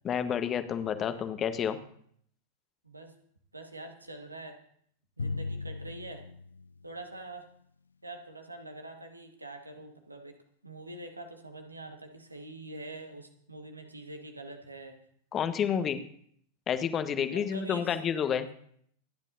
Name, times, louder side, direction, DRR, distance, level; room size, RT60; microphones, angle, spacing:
voice 1, 0.0-1.8 15.3-16.0 16.7-18.5, left 8 dB, 25° left, 9 dB, 1.3 m, -29 dB
voice 2, 2.8-3.1 3.5-4.6 5.2-6.2 6.8-7.5 8.0-10.3 10.6-15.0 15.7-15.8 17.3-18.0, right 2 dB, 80° right, 4 dB, 1.8 m, -44 dB
Drum, 5.2-7.6, left 3 dB, 75° left, 0.5 m, -38 dB
27.0 x 10.5 x 2.7 m, 0.64 s
figure-of-eight pair, 90°, 0 cm